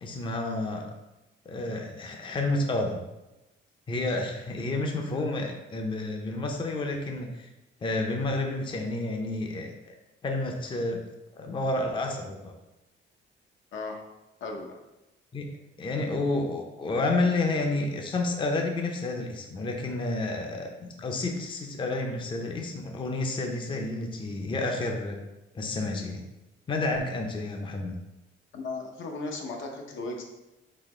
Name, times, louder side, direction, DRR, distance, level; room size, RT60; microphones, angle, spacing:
voice 1, 0.0-0.9 1.5-2.9 3.9-7.5 7.8-9.9 10.2-11.0 11.4-12.5 15.3-15.5 15.8-25.2 25.5-26.2 26.7-27.9, left 2 dB, 25° left, 2 dB, 0.5 m, -30 dB
voice 2, 14.4-14.8 22.5-22.6 28.5-30.2, left 3 dB, 75° left, 2 dB, 0.8 m, -36 dB
4.1 x 2.8 x 4.3 m, 0.98 s
cardioid pair, 130°, 20 cm